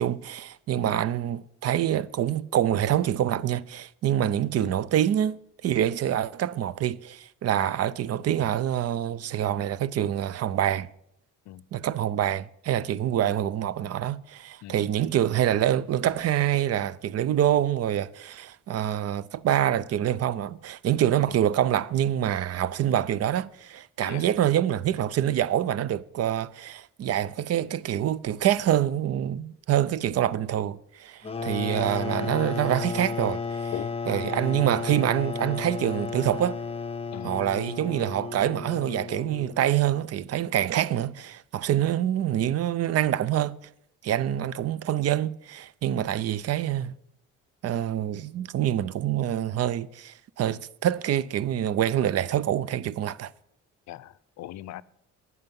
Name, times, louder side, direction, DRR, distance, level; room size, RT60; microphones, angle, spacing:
voice 1, 0.0-10.9 11.7-33.7 34.1-36.6 37.2-43.6 44.0-46.9 47.6-53.3, right 11 dB, 55° right, 0.5 m, -26 dB
sound 1, 31.2-39.7, left 5 dB, 20° left, 0.7 m, -33 dB
voice 2, 53.9-54.8, left 14 dB, 65° left, 0.5 m, -40 dB
11.5 x 9.5 x 5.3 m
cardioid pair, 115°, 31 cm